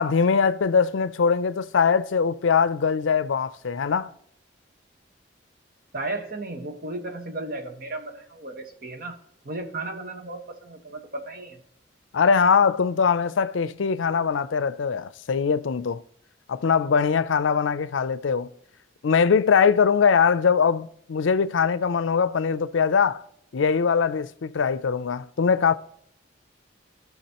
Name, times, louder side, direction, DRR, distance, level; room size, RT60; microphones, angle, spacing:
voice 1, 0.0-4.1 12.1-16.0 16.5-18.5 19.0-23.2 23.5-25.7, left 6 dB, 85° left, 0.5 m, -22 dB
voice 2, 5.9-9.2 9.4-11.6, right 2 dB, 50° right, 1.3 m, -34 dB
16.0 x 5.9 x 2.9 m
head